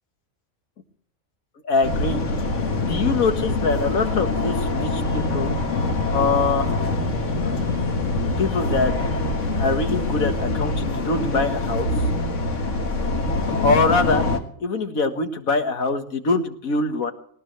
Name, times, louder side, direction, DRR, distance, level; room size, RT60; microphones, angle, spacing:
voice 1, 1.6-2.2 2.8-5.5 6.1-6.7 7.4-7.5 8.4-9.0 9.6-11.9 12.2-12.6 13.6-14.2 14.6-17.1, left 3 dB, 85° left, 7 dB, 2.1 m, -23 dB
sound 1, 1.8-14.4, left 2 dB, 60° left, 1.9 m, -24 dB
19.5 x 19.0 x 3.3 m, 0.63 s
omnidirectional pair, 1.4 m